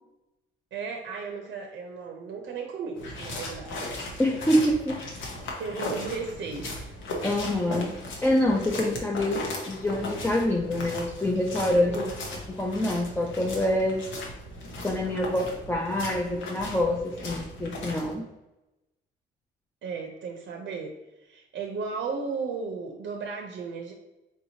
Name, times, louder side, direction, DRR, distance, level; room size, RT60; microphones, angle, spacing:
voice 1, 0.7-3.8 5.6-7.0 11.9-12.1 19.8-23.9, right 5 dB, 65° right, 3 dB, 0.6 m, -35 dB
sound 1, 3.0-18.1, left 1 dB, 85° left, 0.9 m, -37 dB
voice 2, 4.2-5.0 7.2-14.0 14.8-18.3, left 1 dB, 10° left, -1 dB, 0.5 m, -26 dB
4.6 x 2.8 x 2.7 m, 0.97 s
cardioid pair, 90°, 20 cm